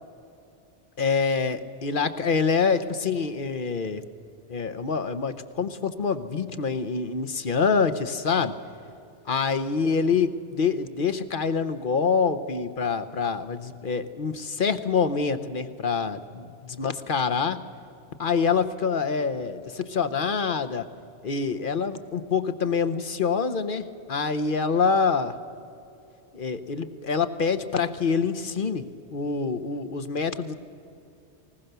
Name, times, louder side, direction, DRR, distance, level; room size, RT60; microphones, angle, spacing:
voice 1, 1.0-4.0 4.5-8.5 9.3-17.6 18.2-20.9 21.2-25.4 26.3-28.9 29.1-30.5, left 5 dB, 50° left, 10 dB, 1.0 m, -26 dB
20.0 x 19.5 x 6.7 m, 2.6 s
omnidirectional pair, 1.2 m